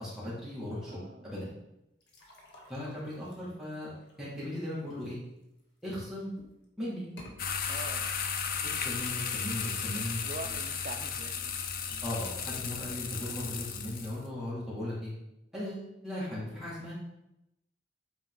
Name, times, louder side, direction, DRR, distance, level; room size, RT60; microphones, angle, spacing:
voice 1, 0.0-1.5 2.7-5.2 5.8-6.4 6.8-7.1 8.6-10.2 12.0-15.1 15.5-16.9, left 1 dB, 5° right, -9 dB, 2.4 m, -37 dB
voice 2, 0.9-1.3 7.7-8.2 10.2-11.6, right 3 dB, 45° right, 6 dB, 0.6 m, -44 dB
sound 1, 2.0-5.8 6.3-6.7 7.0-7.4, equal, 75° left, 1.7 m, -54 dB
sound 2, 7.4-14.2, left 6 dB, 50° left, 0.6 m, -35 dB
8.7 x 4.5 x 3.9 m, 0.87 s
head